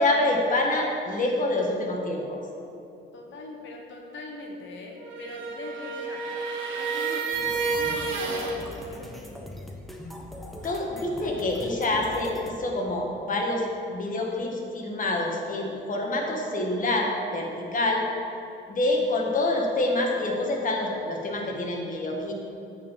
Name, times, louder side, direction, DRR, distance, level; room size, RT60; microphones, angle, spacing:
voice 1, 0.0-2.4 10.6-18.1 18.7-22.3, left 2 dB, 40° left, 0 dB, 1.7 m, -26 dB
voice 2, 3.1-6.2 6.7-9.6, left 2 dB, 70° left, 1 dB, 1.3 m, -41 dB
sound 1, 5.0-8.6, right 4 dB, 75° right, 1.4 m, -30 dB
sound 2, 7.3-12.5, left 1 dB, ahead, 1.1 m, -42 dB
9.0 x 4.7 x 7.3 m, 2.8 s
cardioid pair, 90°, 20 cm